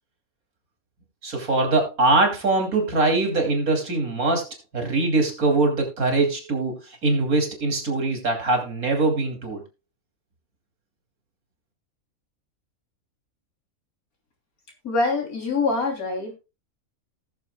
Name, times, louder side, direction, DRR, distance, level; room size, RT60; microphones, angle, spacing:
voice 1, 1.2-9.6, right 3 dB, 80° right, 4 dB, 3.2 m, -22 dB
voice 2, 14.8-16.3, left 3 dB, 85° left, 1 dB, 3.6 m, -24 dB
18.5 x 6.8 x 2.3 m, 0.26 s
omnidirectional pair, 1.5 m